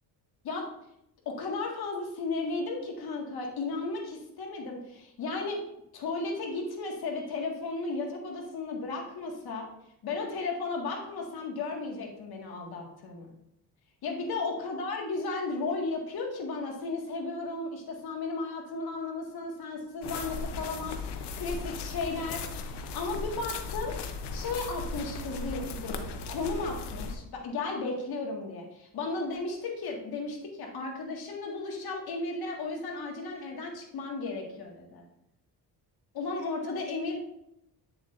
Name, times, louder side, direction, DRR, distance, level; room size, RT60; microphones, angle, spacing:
voice 1, 1.3-5.6 5.9-9.7 10.0-13.3 14.0-23.9 24.3-35.0 36.1-37.2, left 3 dB, 65° left, 0 dB, 1.9 m, -34 dB
sound 1, 20.0-27.2, left 3 dB, 80° left, 0.9 m, -37 dB
8.5 x 7.0 x 2.6 m, 0.78 s
cardioid pair, 115°, 40 cm